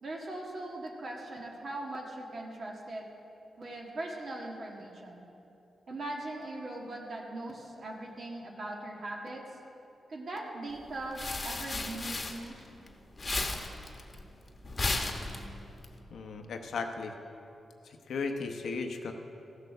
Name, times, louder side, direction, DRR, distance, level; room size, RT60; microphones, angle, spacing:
voice 1, 0.0-3.1 3.6-5.2 5.9-9.4 10.1-12.7, right 2 dB, 55° right, -1 dB, 1.5 m, -40 dB
sound 1, 10.8-12.9 13.1-15.8, left 2 dB, 35° left, 1.1 m, -34 dB
voice 2, 16.1-17.1 17.8-19.1, left 4 dB, 80° left, 4 dB, 0.8 m, -36 dB
15.0 x 6.6 x 6.5 m, 2.9 s
cardioid pair, 95°, 0 cm